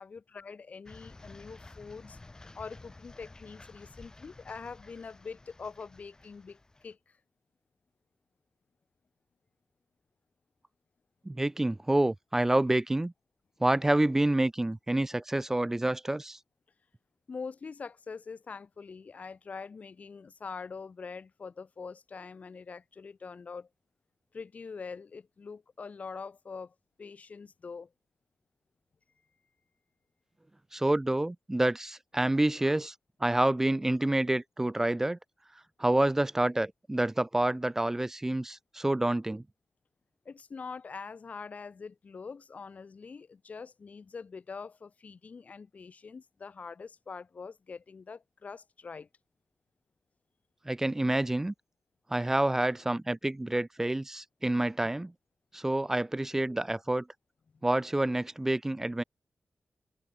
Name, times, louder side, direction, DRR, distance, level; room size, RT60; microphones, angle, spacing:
voice 1, 0.0-2.2 2.5-7.2 17.3-23.7 24.3-27.9 40.3-49.1 57.5-57.6, left 5 dB, 45° left, 2.1 m, -44 dB
sound 1, 0.9-6.9, left 2 dB, 20° left, 3.1 m, -52 dB
voice 2, 11.3-13.1 13.6-16.4 30.7-32.9 33.2-35.2 35.8-39.4 50.7-51.5 52.1-55.1 55.5-57.0 57.6-59.0, right 1 dB, 10° right, 0.3 m, -28 dB
wide cardioid pair, 165°, 4 cm